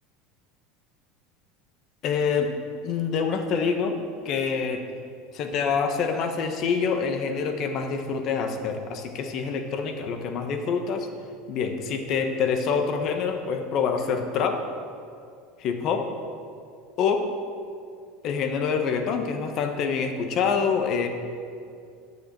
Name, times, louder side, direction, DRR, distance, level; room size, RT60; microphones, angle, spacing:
voice 1, 2.0-2.5 2.8-4.0 4.2-4.8 5.3-11.1 11.5-14.6 15.6-16.1 17.0-17.2 18.2-21.1, left 6 dB, 50° left, 6 dB, 1.1 m, -26 dB
8.6 x 6.5 x 7.3 m, 2.3 s
supercardioid pair, 120°, 0 cm